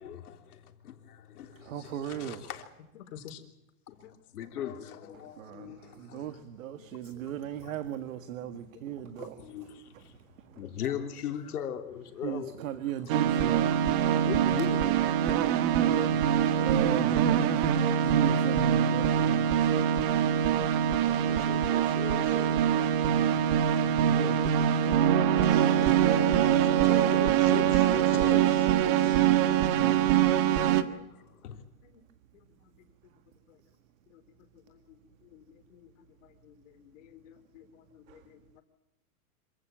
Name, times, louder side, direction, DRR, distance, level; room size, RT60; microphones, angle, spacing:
voice 1, 0.0-2.7 4.0-6.4 7.3-7.7 9.2-12.6 13.1-13.2 14.2-15.5 15.8-16.5 20.5-24.5 24.9-31.6, left 9 dB, 80° left, 3.5 m, -41 dB
voice 2, 1.6-2.4 5.4-9.4 12.2-13.8 16.6-17.2 18.0-19.7 24.0-24.4 29.7-30.1, right 11 dB, 60° right, 1.8 m, -36 dB
voice 3, 3.0-3.4 4.0-4.1 6.1-6.2 6.8-6.9 8.4-9.3 20.5-20.7 23.5-23.8 29.9-30.1 31.8-31.9 34.1-34.2 34.7-34.8 35.3-35.4 35.7-35.8 36.4-38.6, left 9 dB, 55° left, 3.9 m, -52 dB
sound 1, 13.1-30.8, right 10 dB, 35° right, 1.5 m, -24 dB
26.0 x 16.5 x 9.1 m
supercardioid pair, 155°, 45 cm